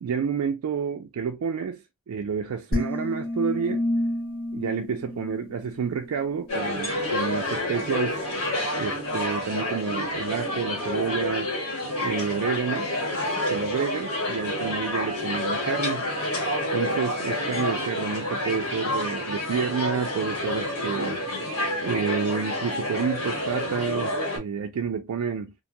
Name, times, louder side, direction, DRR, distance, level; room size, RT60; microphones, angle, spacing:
voice 1, 0.0-3.8 4.5-8.2 8.8-11.5 12.0-12.9 13.4-16.0 16.7-21.2 21.8-25.5, right 6 dB, 75° right, 0.3 m, -29 dB
sound 1, 2.7-6.1, left 1 dB, 40° left, 0.9 m, -29 dB
sound 2, 6.5-24.4, left 1 dB, 85° left, 1.5 m, -29 dB
2.5 x 2.2 x 2.7 m
head